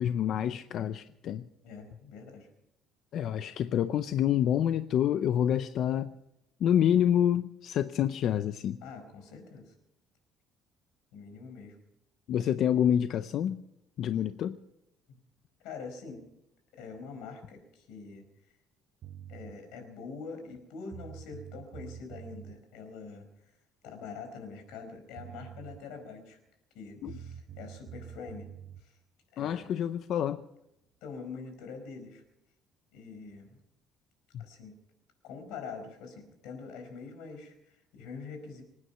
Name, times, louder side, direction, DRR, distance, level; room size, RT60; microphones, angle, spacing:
voice 1, 0.0-1.5 3.1-6.1 6.6-8.8 12.3-13.6 14.0-14.6 27.0-27.2 29.4-30.4 34.3-34.5, left 10 dB, 55° left, 11 dB, 0.6 m, -27 dB
voice 2, 1.6-2.5 8.8-9.7 11.1-11.8 15.1-15.2 15.6-16.2 16.7-18.2 19.3-23.5 23.8-26.4 26.7-28.5 28.8-29.0 29.3-29.7 31.0-32.2 32.9-33.6 34.4-34.7 35.2-38.6, left 5 dB, 90° left, 7 dB, 4.8 m, -44 dB
sound 1, 19.0-19.5 20.6-20.7 20.9-22.6 24.8-24.9 25.2-25.8 27.1-28.8, right 9 dB, 55° right, 0.8 m, -46 dB
26.0 x 9.8 x 5.7 m, 0.83 s
cardioid pair, 140°, 0 cm